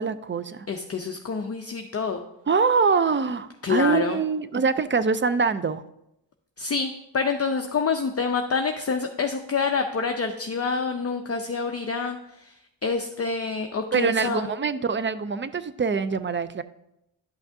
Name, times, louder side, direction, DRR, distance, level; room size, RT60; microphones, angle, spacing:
voice 1, 0.0-0.7 2.5-5.8 13.9-16.6, right 5 dB, 30° right, 13 dB, 0.3 m, -24 dB
voice 2, 0.7-2.2 3.6-4.2 6.6-14.5, left 5 dB, 35° left, 4 dB, 0.5 m, -27 dB
11.0 x 5.9 x 2.6 m, 0.84 s
cardioid pair, 75°, 45 cm